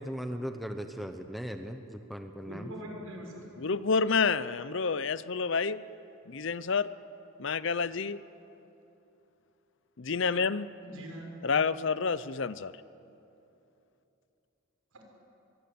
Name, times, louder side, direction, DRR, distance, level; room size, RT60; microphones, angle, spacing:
voice 1, 0.0-2.7, equal, ahead, 5 dB, 1.0 m, -38 dB
voice 2, 2.4-3.5 10.8-11.3 14.9-15.0, equal, 80° right, 1 dB, 5.9 m, -42 dB
voice 3, 3.6-5.8 6.3-6.9 7.4-8.2 10.0-10.7 11.4-12.7, left 5 dB, 60° left, 16 dB, 0.6 m, -29 dB
24.0 x 22.5 x 8.7 m, 2.9 s
head